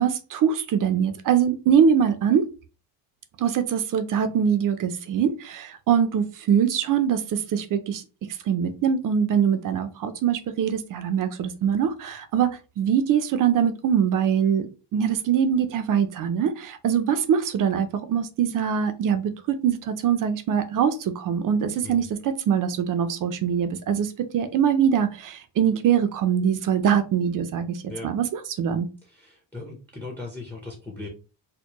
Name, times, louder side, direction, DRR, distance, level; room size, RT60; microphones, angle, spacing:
voice 1, 0.0-2.5 3.4-8.0 8.5-14.7 14.9-28.9, right 8 dB, 50° right, 10 dB, 0.5 m, -23 dB
voice 2, 29.2-31.1, left 3 dB, 5° left, 1 dB, 0.6 m, -38 dB
4.4 x 2.1 x 2.8 m, 0.32 s
cardioid pair, 155°, 43 cm